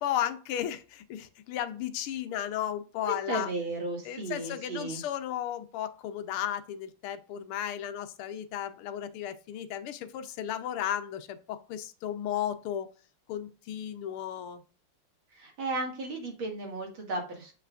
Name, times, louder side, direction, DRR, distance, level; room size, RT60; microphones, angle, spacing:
voice 1, 0.0-3.5 4.0-12.9 13.3-14.6, left 11 dB, 80° left, 10 dB, 1.6 m, -34 dB
voice 2, 3.0-5.0 15.3-17.5, right 2 dB, 65° right, 1 dB, 2.7 m, -34 dB
7.5 x 5.6 x 2.5 m, 0.36 s
omnidirectional pair, 2.4 m